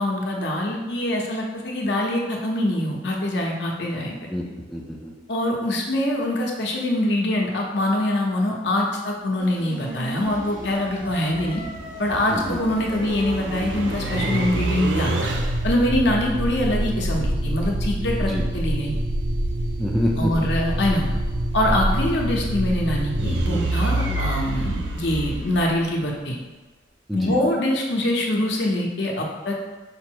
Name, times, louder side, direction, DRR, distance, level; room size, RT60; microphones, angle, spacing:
voice 1, 0.0-4.2 5.3-11.6 12.0-15.3 15.6-19.0 20.2-21.1 21.5-26.4 27.1-29.5, left 1 dB, 70° left, -1 dB, 0.7 m, -24 dB
voice 2, 4.3-5.1 12.3-12.6 18.2-18.4 19.8-20.3 23.5-23.7 24.1-24.2 27.1-27.4, equal, ahead, -3 dB, 0.4 m, -27 dB
sound 1, 9.4-14.5, right 1 dB, 45° right, 0.6 m, -35 dB
sound 2, 10.2-26.2, right 1 dB, 85° right, 0.5 m, -26 dB
5.1 x 2.0 x 4.5 m, 1.3 s
head